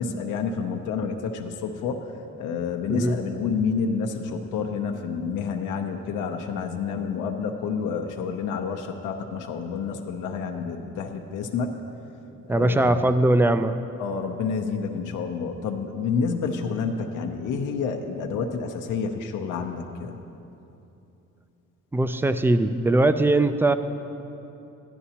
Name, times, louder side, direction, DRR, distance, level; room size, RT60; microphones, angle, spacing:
voice 1, 0.0-2.1 2.4-11.8 12.4-12.9 14.0-20.2, left 5 dB, 85° left, 3 dB, 0.7 m, -29 dB
voice 2, 12.5-13.8 21.9-23.7, right 2 dB, 10° right, 11 dB, 0.3 m, -20 dB
12.5 x 11.0 x 2.8 m, 2.9 s
cardioid pair, 90°, 30 cm